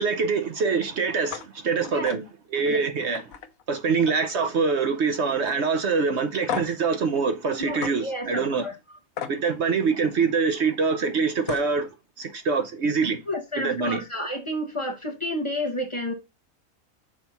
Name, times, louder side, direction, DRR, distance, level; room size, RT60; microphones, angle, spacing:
voice 1, 0.0-2.2 2.5-3.2 3.7-8.7 9.3-11.9 12.2-13.2 13.6-14.0, right 5 dB, 55° right, 1.0 m, -24 dB
sound 1, 1.3-1.5 1.8-2.2 2.6-2.7 3.1-4.3 4.6-5.0 5.4-5.6 6.5-6.8 7.8-7.9 9.2-9.4 11.0-11.1 11.4-11.7, left 7 dB, 80° left, 1.2 m, -34 dB
voice 2, 7.6-8.7 13.3-16.1, left 1 dB, 25° left, 1.0 m, -30 dB
6.2 x 4.2 x 5.8 m
omnidirectional pair, 1.4 m